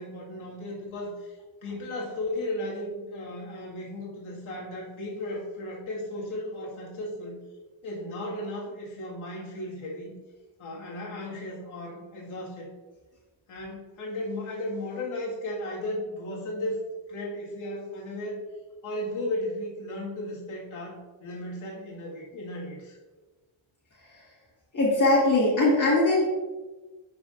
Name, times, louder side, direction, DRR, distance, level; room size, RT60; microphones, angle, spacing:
voice 1, 0.0-1.4 1.6-7.3 7.8-10.1 10.6-12.7 13.5-18.4 18.8-23.0, left 1 dB, 80° left, -4 dB, 1.9 m, -35 dB
voice 2, 24.7-26.3, left 2 dB, 40° left, -6 dB, 1.8 m, -21 dB
10.5 x 4.9 x 2.5 m, 1.2 s
cardioid pair, 120°, 49 cm